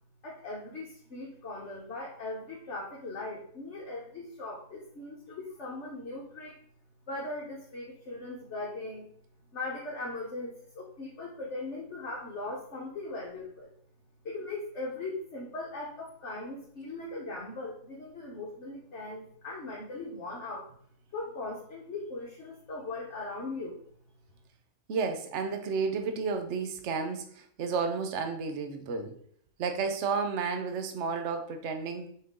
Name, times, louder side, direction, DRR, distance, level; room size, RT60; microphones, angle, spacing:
voice 1, 0.2-6.6 7.1-9.1 9.5-13.7 14.2-20.7 21.1-23.8, left 2 dB, 55° left, -3 dB, 1.4 m, -39 dB
voice 2, 24.9-29.1 29.6-32.1, right 5 dB, 60° right, 6 dB, 1.0 m, -32 dB
6.2 x 4.6 x 3.6 m, 0.62 s
omnidirectional pair, 1.5 m